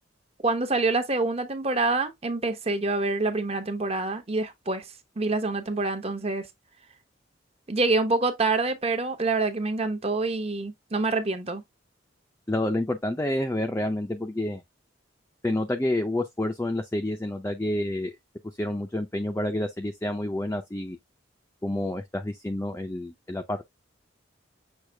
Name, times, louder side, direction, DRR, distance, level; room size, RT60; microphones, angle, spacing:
voice 1, 0.4-4.8 5.2-6.5 7.7-11.6, right 3 dB, 30° right, 0.8 m, -26 dB
voice 2, 12.5-14.6 15.4-18.1 18.6-21.0 21.6-23.7, left 1 dB, 15° left, 0.5 m, -29 dB
6.4 x 2.4 x 3.4 m
head